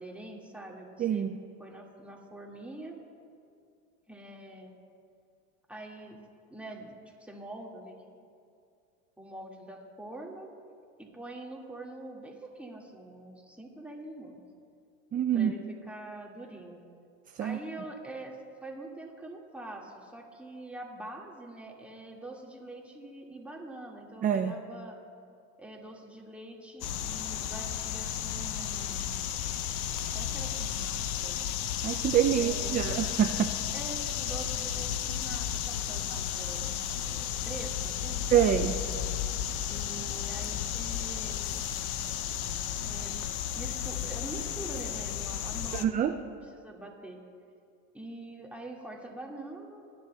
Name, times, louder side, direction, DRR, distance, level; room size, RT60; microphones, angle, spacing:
voice 1, 0.0-1.3 1.6-3.0 4.1-4.7 5.7-6.2 6.5-8.0 9.2-10.5 11.0-14.4 15.3-16.8 17.4-24.9 25.6-29.2 30.1-31.4 32.4-32.8 33.7-36.7 37.1-38.6 39.7-41.6 42.8-43.2 43.5-47.2 47.9-49.9, right 1 dB, 5° right, -1 dB, 1.9 m, -44 dB
voice 2, 1.0-1.4 15.1-15.5 17.4-17.6 24.2-24.5 31.8-33.5 38.3-38.8 45.7-46.1, right 9 dB, 20° right, 6 dB, 0.4 m, -26 dB
sound 1, 26.8-45.9, left 10 dB, 85° left, 0.7 m, -33 dB
22.0 x 10.5 x 2.3 m, 2.4 s
hypercardioid pair, 90°, 43 cm